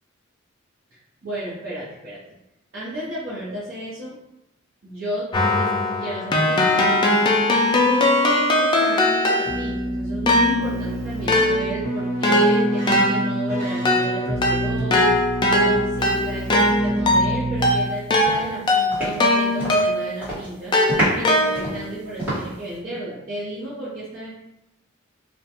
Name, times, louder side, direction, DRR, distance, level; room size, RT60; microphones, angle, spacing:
voice 1, 1.2-2.2 2.7-4.2 4.8-5.3 5.5-5.7 6.0-7.2 7.8-15.1 15.5-20.7 21.1-24.3, right 1 dB, 50° right, -10 dB, 0.6 m, -33 dB
Keyboard (musical), 5.3-9.8 10.3-20.2 20.7-21.9, left 1 dB, 25° left, 0.3 m, -20 dB
Keyboard (musical) 2, 9.4-18.2, right 1 dB, 85° right, 0.8 m, -28 dB
sound 1, 17.7-17.9 18.2-19.9 20.2-20.5 20.9-22.7, right 1 dB, 10° right, 1.1 m, -27 dB
2.4 x 2.1 x 2.8 m, 0.87 s
head